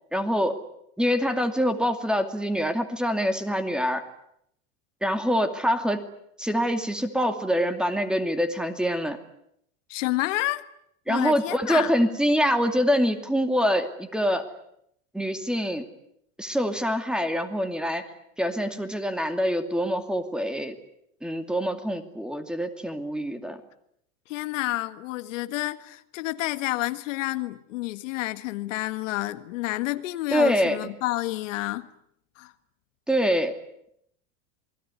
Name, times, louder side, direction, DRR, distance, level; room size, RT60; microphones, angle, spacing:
voice 1, 0.1-0.6 1.0-4.0 5.0-6.0 6.4-9.2 11.1-14.5 15.1-15.8 16.4-18.0 18.4-20.7 21.2-23.6 30.3-30.8 33.1-33.6, equal, ahead, 2.5 m, -25 dB
voice 2, 9.9-10.7 11.1-12.0 24.3-31.9 32.4-32.5, left 18 dB, 80° left, 1.8 m, -29 dB
28.0 x 21.0 x 9.8 m
supercardioid pair, 150°, 37 cm